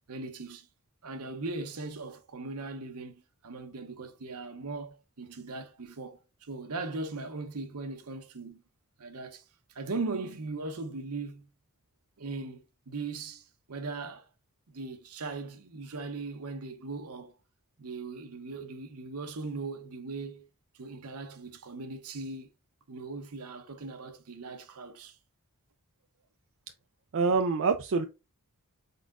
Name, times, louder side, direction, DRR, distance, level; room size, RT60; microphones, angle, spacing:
voice 1, 0.1-0.7 1.0-6.2 6.5-8.6 9.0-9.4 9.7-11.5 12.2-14.3 14.7-17.3 17.8-20.5 20.7-22.5 22.9-25.2, right 3 dB, 85° right, 0.8 m, -39 dB
voice 2, 27.1-28.1, right 4 dB, 60° right, 0.4 m, -25 dB
4.6 x 4.1 x 2.5 m
head